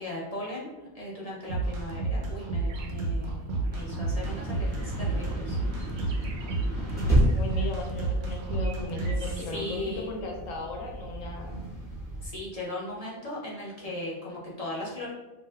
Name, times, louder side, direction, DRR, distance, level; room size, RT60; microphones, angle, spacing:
voice 1, 0.0-5.6 9.2-10.1 12.2-15.1, left 1 dB, 40° left, -6 dB, 0.5 m, -38 dB
sound 1, 1.5-9.3, right 3 dB, 85° right, 1.1 m, -30 dB
sound 2, 2.6-9.5, right 5 dB, 65° right, 0.8 m, -51 dB
sound 3, 2.7-12.3, equal, 5° left, 0.7 m, -33 dB
voice 2, 7.3-11.6, left 2 dB, 70° left, 0 dB, 1.0 m, -36 dB
2.5 x 2.4 x 3.2 m, 1.1 s
omnidirectional pair, 1.5 m